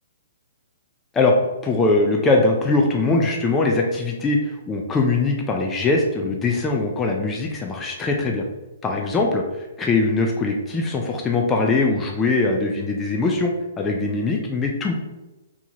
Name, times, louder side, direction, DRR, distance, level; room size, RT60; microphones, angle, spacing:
voice 1, 1.6-8.4 8.8-13.5 13.8-14.9, left 3 dB, 10° left, 0 dB, 0.3 m, -21 dB
4.5 x 2.9 x 2.7 m, 1.1 s
hypercardioid pair, 165°, 0 cm